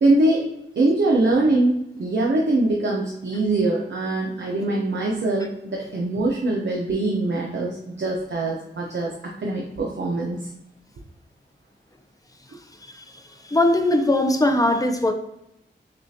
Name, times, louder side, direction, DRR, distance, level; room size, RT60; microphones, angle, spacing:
voice 1, 0.0-9.1 9.4-10.4, right 2 dB, 65° right, -2 dB, 0.7 m, -23 dB
voice 2, 13.5-15.1, left 1 dB, 20° left, 5 dB, 0.5 m, -20 dB
6.3 x 2.4 x 2.8 m, 0.84 s
wide cardioid pair, 110°, 20 cm